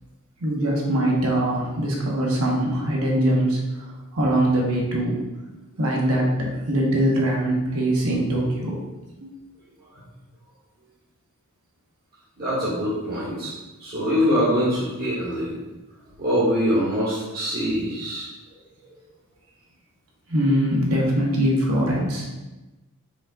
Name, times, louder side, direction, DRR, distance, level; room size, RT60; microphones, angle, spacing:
voice 1, 0.4-3.9 4.1-5.2 5.8-8.8 9.2-9.3 20.3-22.4, right 1 dB, 70° right, -2 dB, 1.1 m, -22 dB
voice 2, 12.4-13.5 13.8-15.5 16.2-18.3, equal, 45° right, -11 dB, 1.2 m, -23 dB
5.0 x 3.8 x 2.3 m, 1.1 s
head